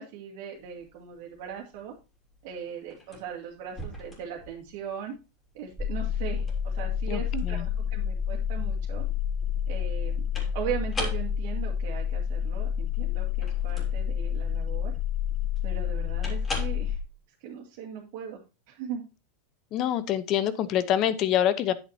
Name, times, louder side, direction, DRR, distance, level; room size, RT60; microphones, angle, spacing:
voice 1, 0.0-1.9 2.4-5.1 5.5-9.0 9.7-10.2 10.5-14.9 15.6-17.0 17.4-18.4 18.7-19.0, right 8 dB, 55° right, -3 dB, 2.2 m, -38 dB
sound 1, 0.6-16.8, left 1 dB, 15° left, 3.0 m, -42 dB
sound 2, 5.8-17.0, left 8 dB, 10° right, 1.0 m, -29 dB
voice 2, 7.1-7.6 19.7-21.7, left 11 dB, 35° left, 14 dB, 0.9 m, -26 dB
9.7 x 8.3 x 2.8 m, 0.29 s
supercardioid pair, 155°, 0 cm